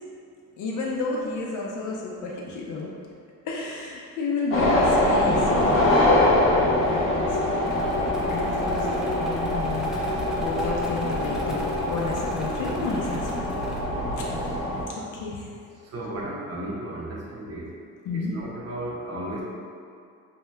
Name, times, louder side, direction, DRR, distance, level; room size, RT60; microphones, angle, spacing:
voice 1, 0.6-2.9 3.4-6.0 6.7-7.6 8.3-9.9 10.4-13.5 14.2-14.3 15.0-15.5 18.1-18.3, left 3 dB, 80° left, -3 dB, 0.6 m, -31 dB
sound 1, 4.5-14.8, left 1 dB, 45° left, 0.8 m, -24 dB
sound 2, 7.7-13.8, equal, ahead, 0.4 m, -39 dB
voice 2, 15.8-17.8 18.3-19.4, right 1 dB, 55° right, -5 dB, 0.8 m, -34 dB
2.7 x 2.2 x 3.2 m, 2.3 s
cardioid pair, 90°, 30 cm